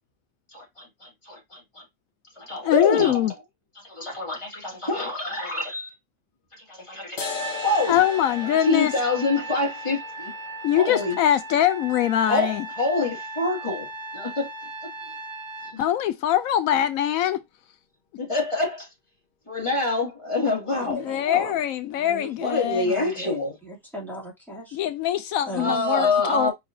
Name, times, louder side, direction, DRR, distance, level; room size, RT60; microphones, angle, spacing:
voice 1, 0.5-1.8 2.4-3.2 3.8-5.9 6.6-8.0 8.7-10.3 10.7-11.2 12.3-13.9 14.1-14.5 15.7-15.8 18.2-18.9 19.5-21.5 22.4-23.5 25.6-26.5, left 2 dB, 20° left, 2.3 m, -26 dB
voice 2, 2.6-3.3 7.9-8.9 10.6-12.7 15.8-17.4 20.8-22.9 24.7-26.5, left 11 dB, 85° left, 1.0 m, -23 dB
sound 1, 7.2-14.1, left 6 dB, 45° left, 0.8 m, -40 dB
Trumpet, 7.2-15.8, right 2 dB, 55° right, 1.5 m, -37 dB
voice 3, 20.7-21.5 22.0-22.3 22.8-23.4 23.6-24.8 25.5-26.5, equal, ahead, 2.4 m, -38 dB
5.0 x 3.9 x 2.6 m
omnidirectional pair, 1.4 m